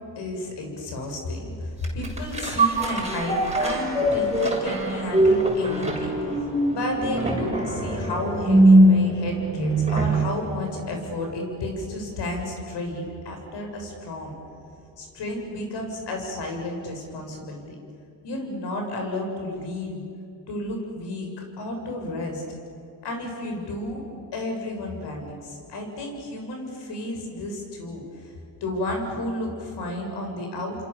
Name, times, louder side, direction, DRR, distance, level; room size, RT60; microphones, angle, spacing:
voice 1, 0.2-6.2 6.7-14.3 15.0-17.8 18.2-20.0 20.5-22.4 23.0-24.0 24.3-28.3 28.6-30.8, left 1 dB, 60° left, 2 dB, 7.6 m, -32 dB
sound 1, 1.8-10.4 10.8-10.9, right 1 dB, 15° right, 7.0 m, -21 dB
28.5 x 26.5 x 7.2 m, 2.5 s
supercardioid pair, 85°, 47 cm